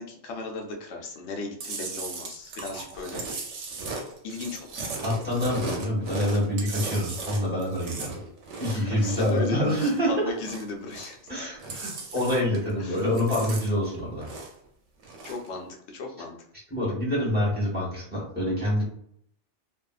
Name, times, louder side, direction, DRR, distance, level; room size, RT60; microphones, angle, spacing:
voice 1, 0.0-3.3 4.2-4.9 8.7-11.2 12.8-13.1 15.2-16.4, left 3 dB, 75° left, 2 dB, 0.9 m, -36 dB
Chewing mastication, 1.6-10.1 10.3-11.3 11.5-12.7 13.0-14.7 15.0-15.5, right 3 dB, 85° right, 1.0 m, -37 dB
voice 2, 5.0-8.2 8.6-10.3 11.3-14.2 16.7-18.8, equal, 10° right, -5 dB, 1.1 m, -26 dB
2.6 x 2.3 x 2.3 m, 0.67 s
omnidirectional pair, 1.2 m